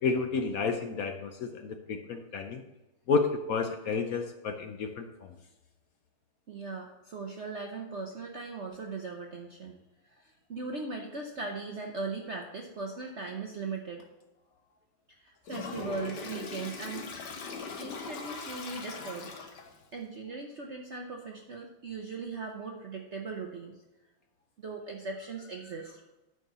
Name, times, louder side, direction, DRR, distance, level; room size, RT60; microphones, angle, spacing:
voice 1, 0.0-2.6 3.1-5.3, left 4 dB, 75° left, 6 dB, 0.8 m, -31 dB
voice 2, 6.5-9.7 10.1-14.1 15.2-17.3 17.7-19.3 19.9-23.8 24.6-26.0, right 4 dB, 60° right, 2 dB, 0.7 m, -39 dB
Toilet flush, 15.5-19.8, left 5 dB, 60° left, 1.5 m, -40 dB
9.5 x 4.4 x 6.8 m, 1.0 s
omnidirectional pair, 2.3 m